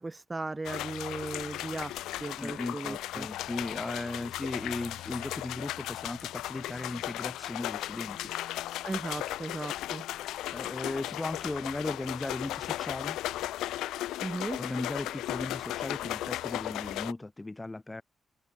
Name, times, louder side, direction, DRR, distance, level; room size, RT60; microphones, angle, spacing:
voice 1, 0.0-3.3 8.8-10.0 14.2-14.6, right 2 dB, 30° right, 4.4 m, -37 dB
sound 1, 0.7-17.1, left 14 dB, 90° left, 1.9 m, -36 dB
voice 2, 2.4-8.3 10.5-13.2 14.6-18.0, left 2 dB, 25° left, 2.1 m, -37 dB
supercardioid pair, 45°, 0 cm